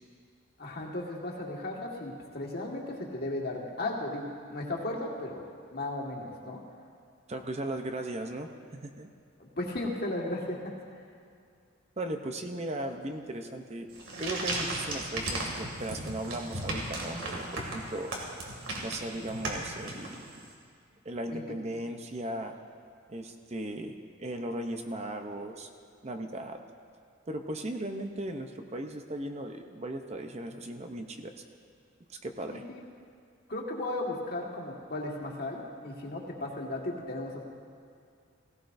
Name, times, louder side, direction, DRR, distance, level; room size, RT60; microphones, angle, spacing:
voice 1, 0.6-5.4 5.7-6.6 9.4-10.7 21.3-21.4 32.5-32.8 33.5-37.4, left 2 dB, 50° left, -1 dB, 1.7 m, -35 dB
voice 2, 7.3-9.1 12.0-13.9 14.2-18.1 18.8-20.2 21.0-22.6 23.1-25.7 26.0-26.6 27.3-31.3 32.1-32.6, right 1 dB, 30° right, 5 dB, 0.7 m, -37 dB
sound 1, 13.9-20.5, right 2 dB, 75° right, 2.4 m, -36 dB
17.0 x 17.0 x 2.6 m, 2.3 s
head